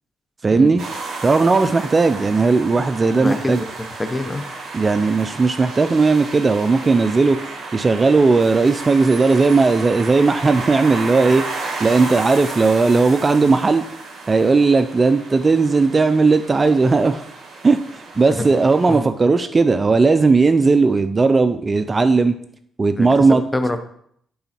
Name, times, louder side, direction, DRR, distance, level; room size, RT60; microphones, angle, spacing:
voice 1, 0.4-0.8 1.2-3.6 4.7-13.8 14.3-17.2 17.6-22.3 22.8-23.4, right 4 dB, 30° right, 10 dB, 0.4 m, -16 dB
sound 1, 0.8-19.0, right 3 dB, 55° right, 2.2 m, -33 dB
voice 2, 3.2-3.7 4.0-4.4 18.3-18.4 18.9-19.1 22.9-23.1 23.5-23.9, left 1 dB, 15° left, 8 dB, 0.9 m, -24 dB
10.5 x 3.9 x 4.3 m, 0.66 s
cardioid pair, 90°, 0 cm